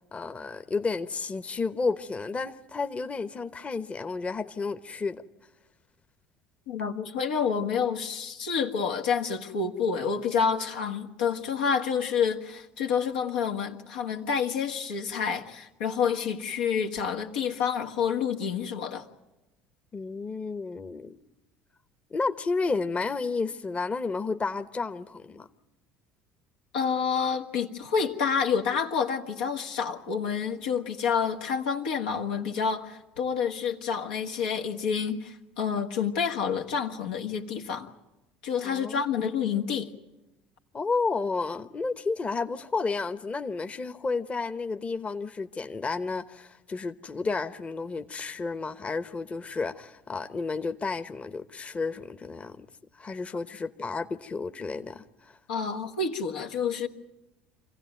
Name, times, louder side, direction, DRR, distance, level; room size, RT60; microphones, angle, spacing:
voice 1, 0.1-5.2 19.9-21.2 22.1-25.5 38.6-39.0 40.7-52.7 53.0-55.4, left 4 dB, 25° left, 1.0 m, -31 dB
voice 2, 6.7-19.0 26.7-37.9 38.4-39.9 55.5-56.9, left 6 dB, 80° left, 1.7 m, -28 dB
25.5 x 16.0 x 9.3 m
hypercardioid pair, 70°, 5 cm